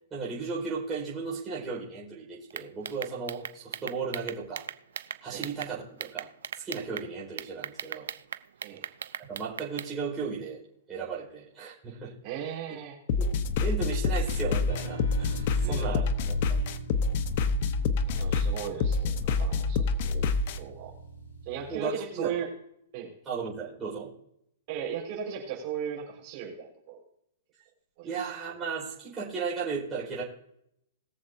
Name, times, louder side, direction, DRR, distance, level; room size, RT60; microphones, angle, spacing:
voice 1, 0.1-4.6 5.2-6.3 6.6-8.1 9.2-10.6 10.9-12.1 13.2-13.3 13.6-16.7 21.7-22.3 23.2-24.1 28.0-30.2, right 5 dB, 15° right, -6 dB, 4.9 m, -35 dB
sound 1, 2.5-5.7 6.0-7.1 7.4-9.9, right 8 dB, 85° right, 0.6 m, -38 dB
voice 2, 12.2-13.0 15.6-16.0 18.1-20.3 20.6-20.9 21.4-22.5 22.9-23.1 24.7-27.0 28.0-28.2, right 8 dB, 40° right, -2 dB, 4.9 m, -37 dB
sound 2, 13.1-20.6, left 4 dB, 45° left, 0.9 m, -27 dB
sound 3, 14.7-21.7, right 2 dB, 75° left, 5.3 m, -43 dB
21.0 x 7.4 x 2.7 m, 0.75 s
hypercardioid pair, 160°, 0 cm